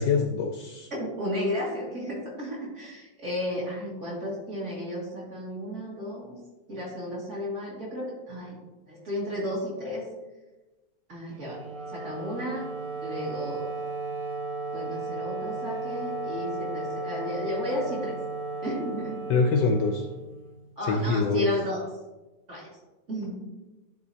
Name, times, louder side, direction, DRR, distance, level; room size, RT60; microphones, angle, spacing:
voice 1, 0.0-0.9 19.3-20.1 20.8-21.5, left 4 dB, 75° left, 4 dB, 1.1 m, -24 dB
voice 2, 0.9-6.3 6.7-8.6 8.9-10.0 11.1-11.6 11.9-12.6 13.0-13.7 14.7-18.1 18.6-19.3 20.8-21.8 22.5-22.7 23.1-23.4, left 1 dB, 35° right, -6 dB, 2.5 m, -33 dB
Wind instrument woodwind instrument, 11.3-20.7, right 3 dB, 65° right, 1.7 m, -35 dB
11.5 x 4.0 x 2.8 m, 1.1 s
omnidirectional pair, 2.2 m